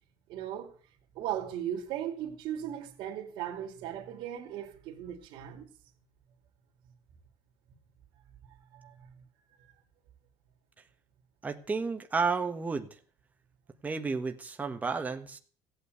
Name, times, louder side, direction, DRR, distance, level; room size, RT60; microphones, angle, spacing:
voice 1, 0.3-0.8 1.1-5.7 8.5-9.2 9.6-9.7, right 10 dB, 65° right, 2.8 m, -38 dB
voice 2, 11.4-12.9 13.8-15.4, right 4 dB, 15° right, 1.4 m, -32 dB
16.5 x 8.7 x 8.2 m
cardioid pair, 130°, 9 cm